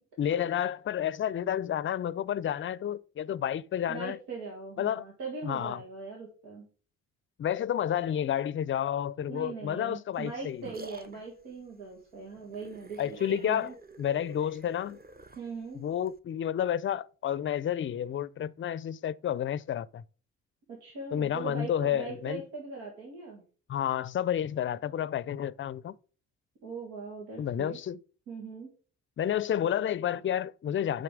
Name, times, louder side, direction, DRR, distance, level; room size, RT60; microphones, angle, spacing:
voice 1, 0.2-4.2 4.8-5.0 5.4-5.8 7.4-10.7 13.0-13.7 14.0-15.0 15.7-20.0 21.1-22.4 23.7-26.0 27.4-28.0 29.2-31.0, left 10 dB, 35° left, 0.5 m, -30 dB
voice 2, 3.9-6.7 9.3-13.7 15.4-15.8 20.7-23.4 26.6-27.8 28.3-28.7, right 4 dB, 85° right, 1.8 m, -40 dB
sound 1, 10.1-16.2, right 2 dB, 25° right, 0.9 m, -50 dB
7.6 x 5.3 x 5.0 m
hypercardioid pair, 50°, 36 cm